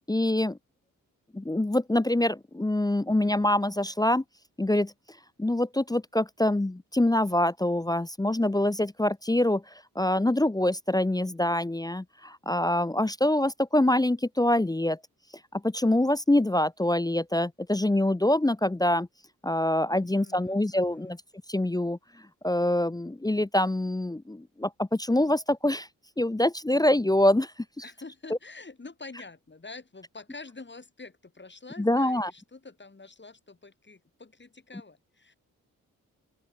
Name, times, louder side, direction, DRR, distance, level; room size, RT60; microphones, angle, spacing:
voice 1, 0.1-0.6 1.3-4.2 4.6-4.9 5.4-15.0 15.5-19.1 19.4-21.2 21.5-22.0 22.4-25.9 26.2-27.5 31.8-32.3, left 1 dB, 10° left, 0.8 m, -25 dB
voice 2, 19.9-21.2 27.8-35.3, left 3 dB, 30° left, 3.4 m, -47 dB
open air
supercardioid pair, 50°, 36 cm